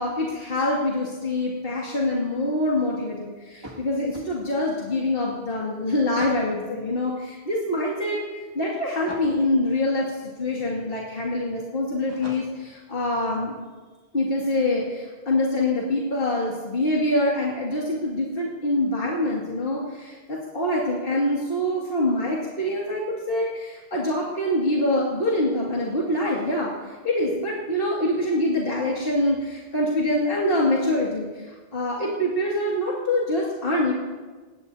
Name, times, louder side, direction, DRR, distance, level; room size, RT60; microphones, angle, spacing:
voice 1, 0.0-8.2 8.5-10.1 10.4-13.6 14.1-33.9, left 1 dB, 65° left, -5 dB, 2.5 m, -25 dB
sound 1, 3.6-4.3 6.2-6.5 9.0-9.4 12.1-12.7, equal, 25° right, 2.1 m, -41 dB
20.5 x 17.5 x 2.8 m, 1.3 s
omnidirectional pair, 1.0 m